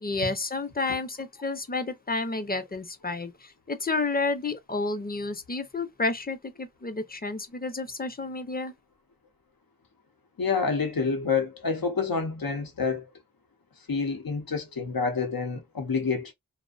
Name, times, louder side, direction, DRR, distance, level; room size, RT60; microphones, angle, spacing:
voice 1, 0.0-8.7, left 3 dB, 25° left, 0.5 m, -30 dB
voice 2, 10.4-13.1 13.9-16.3, left 5 dB, 90° left, 0.7 m, -28 dB
2.5 x 2.1 x 2.3 m
wide cardioid pair, 45°, 34 cm